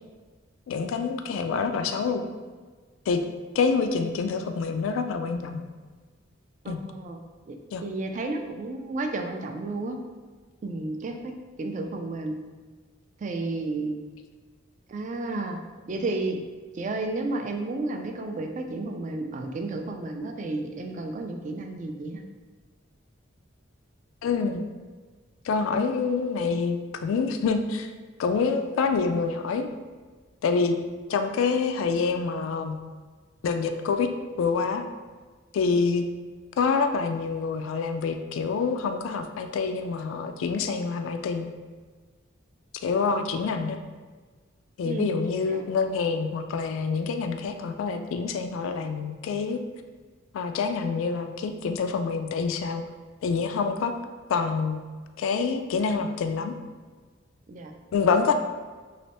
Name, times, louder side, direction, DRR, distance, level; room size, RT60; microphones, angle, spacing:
voice 1, 0.7-2.3 3.1-3.2 3.5-5.7 6.7-6.8 7.7-7.8 24.2-24.6 25.4-27.9 28.2-29.7 30.4-30.8 31.1-32.8 33.4-34.1 34.4-34.8 35.5-36.1 36.6-41.5 42.8-43.8 44.8-49.6 50.3-52.8 53.2-53.9 54.3-54.8 55.2-56.5 57.9-58.3, left 5 dB, 75° left, 8 dB, 0.3 m, -26 dB
voice 2, 6.6-7.2 7.5-10.0 10.6-12.4 13.2-14.0 14.9-15.6 15.9-16.4 16.7-22.2 44.8-45.2 45.5-45.6 57.5-57.7, right 2 dB, 35° right, 4 dB, 0.3 m, -32 dB
3.2 x 3.0 x 2.8 m, 1.4 s
head